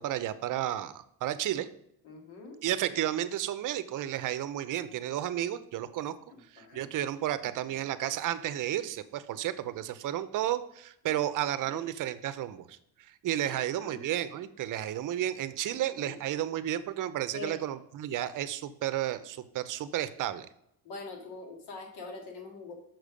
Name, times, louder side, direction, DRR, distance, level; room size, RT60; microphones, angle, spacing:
voice 1, 0.0-1.7 2.6-6.2 6.5-12.8 13.2-20.5, right 12 dB, 55° right, 14 dB, 0.6 m, -32 dB
voice 2, 2.0-2.6 6.3-6.9 7.7-7.9 11.1-11.2 11.6-11.8 13.5-14.0 15.7-16.1 17.3-17.6 20.8-22.7, left 3 dB, 85° left, 3 dB, 2.0 m, -44 dB
6.7 x 6.0 x 4.9 m, 0.77 s
cardioid pair, 135°, 38 cm